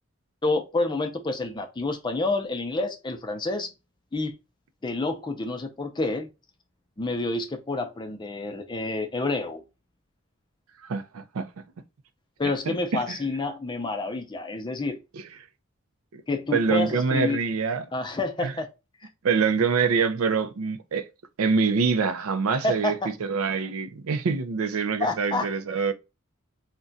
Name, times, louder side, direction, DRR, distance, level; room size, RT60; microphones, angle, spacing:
voice 1, 0.4-3.7 4.1-4.3 4.8-6.3 7.0-9.6 12.4-15.0 16.3-17.4 17.9-18.7 22.6-23.1 25.0-25.5, left 2 dB, 20° left, 0.4 m, -28 dB
voice 2, 10.9-11.5 12.7-13.2 15.1-15.2 16.1-16.2 16.5-17.9 18.4-18.5 19.2-21.1 21.4-22.9 23.2-25.9, right 5 dB, 90° right, 0.4 m, -25 dB
2.4 x 2.2 x 3.8 m
head